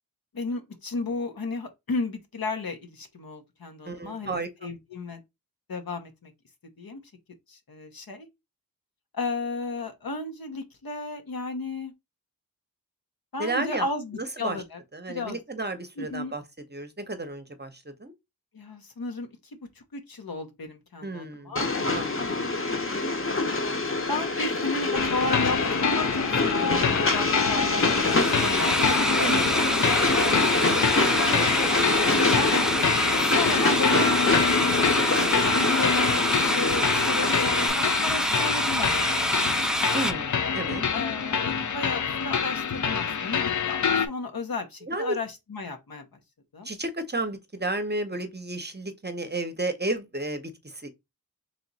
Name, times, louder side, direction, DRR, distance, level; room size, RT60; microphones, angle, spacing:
voice 1, 0.3-5.2 5.7-6.3 6.8-7.0 7.5-8.3 9.1-11.9 13.3-14.8 15.1-15.4 16.0-16.3 18.5-19.3 19.9-21.7 22.2-23.0 24.1-29.3 30.2-30.4 31.3-31.5 32.3-32.7 33.2-34.2 34.4-39.6 40.9-46.2 46.5-46.7, left 3 dB, 75° left, 1.0 m, -34 dB
voice 2, 3.8-4.5 13.4-13.9 14.1-14.6 14.9-16.4 16.7-18.1 21.0-21.5 21.9-22.5 29.2-29.7 31.3-31.5 31.8-32.2 39.9-40.8 44.8-45.2 46.6-50.9, right 2 dB, 30° right, 0.7 m, -32 dB
Train, 21.6-37.7, left 3 dB, 35° left, 0.9 m, -26 dB
sound 1, 24.9-44.1, left 6 dB, 55° left, 0.5 m, -26 dB
sound 2, 27.7-40.1, equal, ahead, 0.4 m, -27 dB
3.2 x 2.9 x 4.0 m
wide cardioid pair, 60°, 36 cm